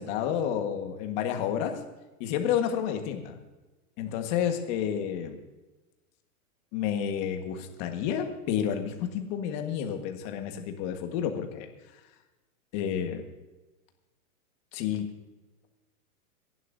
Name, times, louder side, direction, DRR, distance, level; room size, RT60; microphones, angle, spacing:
voice 1, 0.0-1.8 2.2-3.4 4.0-5.4 6.7-11.7 12.7-13.2 14.7-15.0, left 9 dB, 30° left, 5 dB, 1.5 m, -30 dB
26.5 x 11.0 x 2.7 m, 1.1 s
hypercardioid pair, 160°, 44 cm